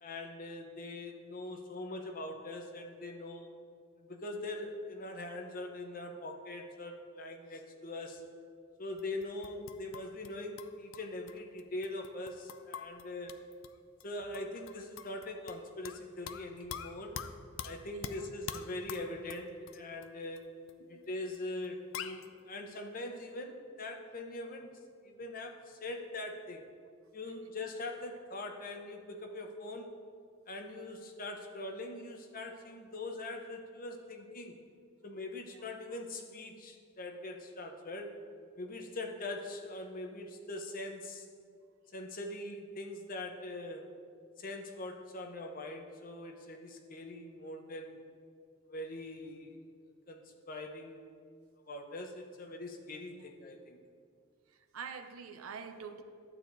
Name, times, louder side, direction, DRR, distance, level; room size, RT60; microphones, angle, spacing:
voice 1, 0.0-3.5 4.0-8.2 8.8-13.4 14.0-17.2 17.6-20.5 20.9-24.7 25.0-26.6 27.1-30.0 30.5-34.6 35.0-38.2 38.6-41.3 41.9-43.9 44.4-48.0 48.7-49.6 50.1-51.1 51.7-53.8, left 2 dB, 40° left, 4 dB, 0.7 m, -42 dB
sound 1, 9.0-10.3 10.6-13.7 14.0-14.1 14.3-16.0 16.3-20.1 20.4-20.5 20.7-20.8 21.3-21.4 21.6-21.7 21.9-22.3, left 8 dB, 65° left, 0.4 m, -44 dB
voice 2, 17.9-18.3 20.8-21.1 35.5-35.6 53.1-53.3 54.5-56.0, right 6 dB, 90° right, 8 dB, 0.6 m, -46 dB
12.0 x 8.3 x 2.6 m, 2.2 s
head